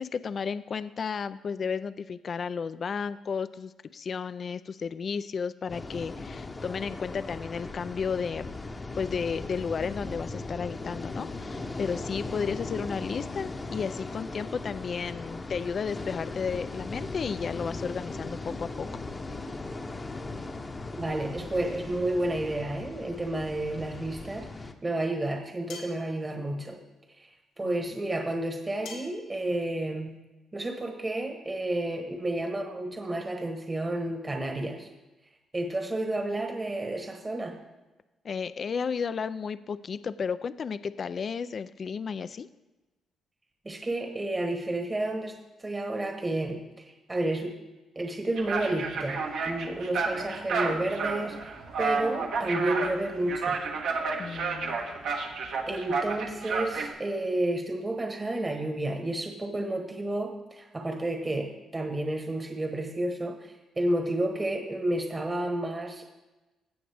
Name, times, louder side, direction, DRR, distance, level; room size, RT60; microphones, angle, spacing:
voice 1, 0.0-8.6 9.0-18.9 27.6-27.7 38.2-42.5 54.2-54.8, left 6 dB, 45° left, 14 dB, 0.3 m, -33 dB
sound 1, 5.7-24.7, left 3 dB, 25° left, 0.8 m, -38 dB
voice 2, 20.9-26.8 27.2-27.3 27.6-30.1 30.5-34.9 35.5-37.6 43.6-47.5 47.9-53.6 55.7-66.1, right 1 dB, 20° right, 3 dB, 1.1 m, -31 dB
sound 2, 25.7-26.1 28.9-29.3, left 4 dB, 85° left, 2.9 m, -42 dB
sound 3, 48.4-56.9, right 4 dB, 75° right, 1.4 m, -31 dB
16.5 x 6.2 x 3.4 m, 1.1 s
cardioid pair, 90°, 0 cm